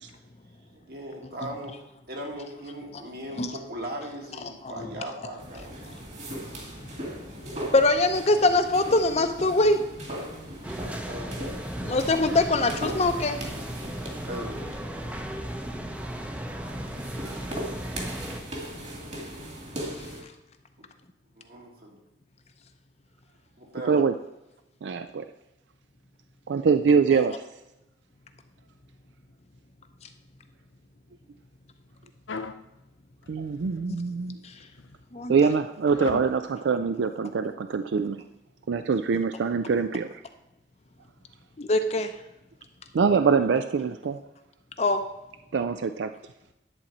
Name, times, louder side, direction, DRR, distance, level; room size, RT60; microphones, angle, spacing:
voice 1, 0.7-1.8 2.1-5.8 11.1-11.4 14.3-14.6 21.4-22.0 23.6-24.0, right 1 dB, 55° right, 0 dB, 2.0 m, -38 dB
sound 1, 5.4-20.2, right 1 dB, 35° right, 2.0 m, -39 dB
voice 2, 7.7-9.8 11.9-13.4 33.9-34.0 34.4-34.6 35.1-35.3 41.6-42.1 44.8-45.0, left 2 dB, 35° left, 8 dB, 0.6 m, -23 dB
sound 2, 10.6-18.4, right 1 dB, 5° right, 0.6 m, -36 dB
voice 3, 24.8-25.3 26.5-27.4 33.3-34.4 35.3-38.2 38.7-40.2 42.9-44.2 45.5-46.1, right 5 dB, 75° right, 9 dB, 0.4 m, -24 dB
sound 3, 32.3-32.6 33.2-33.9 34.6-35.0 35.9-36.3, left 4 dB, 90° left, 0.6 m, -37 dB
11.0 x 4.2 x 7.2 m, 0.94 s
head